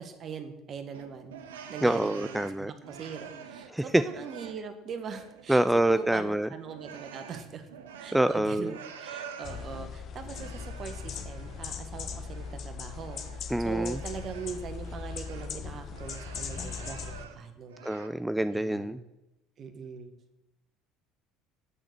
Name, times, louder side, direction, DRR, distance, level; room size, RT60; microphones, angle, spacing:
voice 1, 0.0-1.4 1.7-5.6 5.9-7.7 8.0-17.8 18.5-19.0 19.6-20.1, right 6 dB, 45° right, 8 dB, 1.2 m, -41 dB
sound 1, 0.9-3.8 4.1-5.5 5.8-9.9 10.3-11.7 12.1-15.5 15.9-17.4 17.7-18.1, right 7 dB, 90° right, 0.7 m, -47 dB
voice 2, 1.8-2.7 3.7-4.0 5.5-6.5 8.1-8.8 13.5-14.0 17.8-19.0, right 1 dB, 5° right, 11 dB, 0.3 m, -26 dB
sound 2, 9.4-17.2, left 6 dB, 50° left, 0.8 m, -39 dB
8.9 x 3.9 x 6.7 m, 0.95 s
hypercardioid pair, 75°, 0 cm